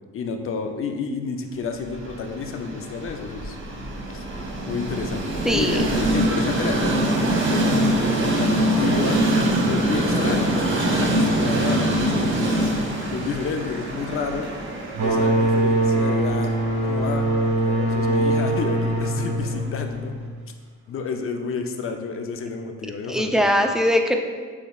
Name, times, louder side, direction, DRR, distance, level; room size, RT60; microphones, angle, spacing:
voice 1, 0.1-3.6 4.1-4.2 4.7-7.9 8.2-9.2 9.4-14.5 15.0-16.5 16.8-17.3 17.6-20.2 20.9-23.5, left 5 dB, 45° left, 5 dB, 0.6 m, -30 dB
Train, 1.8-19.9, right 1 dB, 40° right, 0.9 m, -25 dB
voice 2, 5.5-5.8 23.1-24.2, equal, ahead, 4 dB, 0.3 m, -20 dB
Cheering / Applause / Crowd, 6.8-15.4, left 1 dB, 65° left, 1.4 m, -41 dB
sound 1, 14.9-20.4, right 1 dB, 75° right, 1.4 m, -22 dB
6.9 x 3.2 x 2.4 m, 1.5 s
cardioid pair, 90°, 30 cm